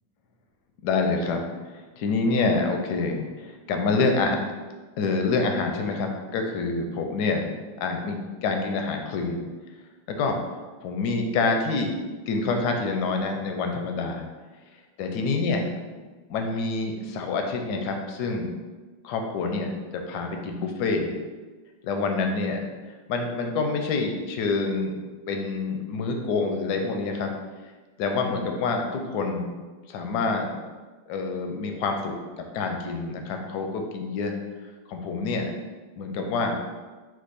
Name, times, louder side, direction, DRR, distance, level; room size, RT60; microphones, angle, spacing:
voice 1, 0.8-4.4 5.0-7.5 7.8-9.4 10.1-11.9 12.3-14.3 15.0-15.7 16.3-18.5 19.0-21.1 21.8-22.6 23.1-25.0 25.3-27.3 28.0-29.5 29.9-30.5 31.1-32.1 32.5-34.3 34.9-35.5 36.0-36.6, left 3 dB, 75° left, 3 dB, 1.0 m, -27 dB
4.5 x 2.5 x 4.0 m, 1.3 s
omnidirectional pair, 2.1 m